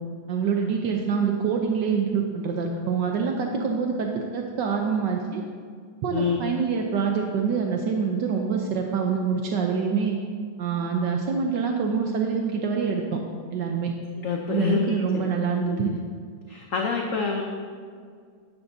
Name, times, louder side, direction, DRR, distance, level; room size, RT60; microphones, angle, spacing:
voice 1, 0.3-5.4 6.0-10.2 10.6-13.2 13.5-13.9 14.5-15.9, right 6 dB, 75° right, 2 dB, 1.4 m, -25 dB
voice 2, 6.1-6.6 14.2-15.3 15.7-16.0 16.5-17.4, left 5 dB, 55° left, 1 dB, 1.0 m, -27 dB
13.0 x 10.5 x 2.7 m, 2.1 s
omnidirectional pair, 2.0 m